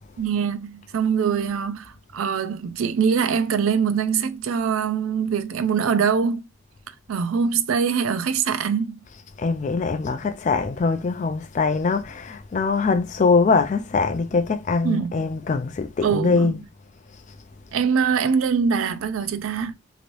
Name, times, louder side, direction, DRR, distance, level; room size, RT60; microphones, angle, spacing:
voice 1, 0.2-6.5 7.1-9.0 14.8-15.1 16.0-16.5 17.7-19.7, right 6 dB, 75° right, 0.4 m, -23 dB
voice 2, 9.4-16.6, left 4 dB, 35° left, 0.3 m, -22 dB
3.1 x 3.0 x 2.5 m
head